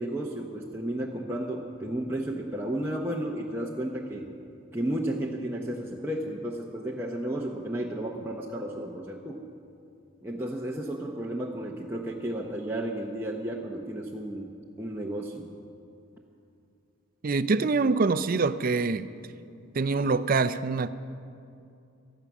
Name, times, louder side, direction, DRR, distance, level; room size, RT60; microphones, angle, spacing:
voice 1, 0.0-4.3 4.7-9.4 10.2-14.5 14.8-15.5, right 1 dB, 10° right, -2 dB, 0.8 m, -33 dB
voice 2, 17.2-19.1 19.8-20.9, right 4 dB, 40° right, 14 dB, 0.4 m, -25 dB
16.0 x 12.5 x 6.0 m, 2.5 s
head